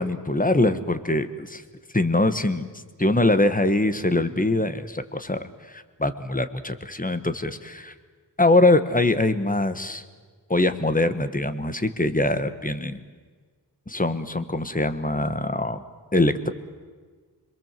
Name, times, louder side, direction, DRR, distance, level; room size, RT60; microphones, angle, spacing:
voice 1, 0.0-1.3 1.9-2.7 3.0-7.9 8.4-10.0 10.5-13.0 13.9-15.8 16.1-16.5, left 2 dB, 20° left, 10 dB, 1.4 m, -23 dB
26.5 x 22.0 x 7.6 m, 1.5 s
wide cardioid pair, 55°, 43 cm